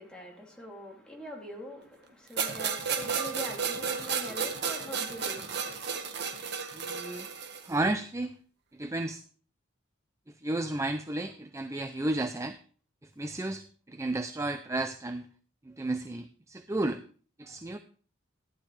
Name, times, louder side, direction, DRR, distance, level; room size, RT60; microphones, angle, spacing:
voice 1, 0.0-5.8, equal, 5° left, 2.9 m, -43 dB
sound 1, 2.4-7.7, right 6 dB, 55° right, 1.6 m, -33 dB
voice 2, 6.8-7.3 7.7-8.3 8.8-9.2 10.4-12.6 13.2-13.6 13.9-15.2 15.8-17.0 17.4-17.8, right 2 dB, 15° right, 0.5 m, -32 dB
14.5 x 11.0 x 3.3 m
head